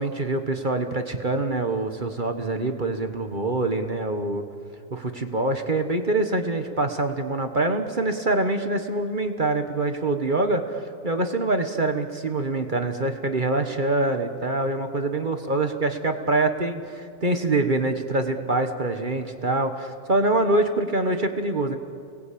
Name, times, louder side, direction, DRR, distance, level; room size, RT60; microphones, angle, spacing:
voice 1, 0.0-4.4 4.9-21.8, right 2 dB, 30° right, 6 dB, 1.3 m, -25 dB
30.0 x 20.0 x 8.6 m, 2.4 s
omnidirectional pair, 2.0 m